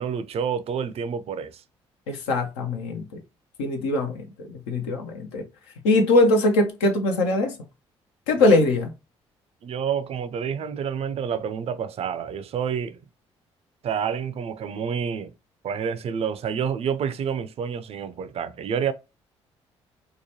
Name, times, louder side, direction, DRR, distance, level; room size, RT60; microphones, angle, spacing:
voice 1, 0.0-1.6 8.4-8.6 9.6-13.0 13.8-15.3 15.6-18.9, right 7 dB, 45° right, 0.4 m, -28 dB
voice 2, 2.1-3.0 3.6-5.4 5.8-7.6 8.3-8.9, left 2 dB, 75° left, 0.5 m, -21 dB
2.9 x 2.2 x 2.8 m
figure-of-eight pair, 45°, 15 cm